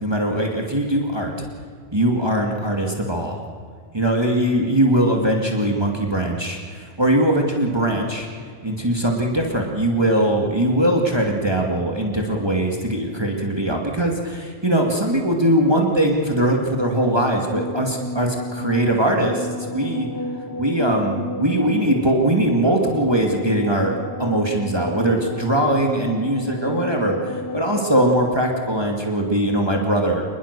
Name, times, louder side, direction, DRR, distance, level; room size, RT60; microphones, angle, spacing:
voice 1, 0.0-1.5 1.9-3.4 3.9-8.3 8.6-20.1 20.6-23.9 24.2-30.2, right 1 dB, 25° right, 1 dB, 2.3 m, -21 dB
sound 1, 17.5-28.8, left 1 dB, 20° left, 0.7 m, -32 dB
27.0 x 21.0 x 6.8 m, 2.1 s
omnidirectional pair, 1.1 m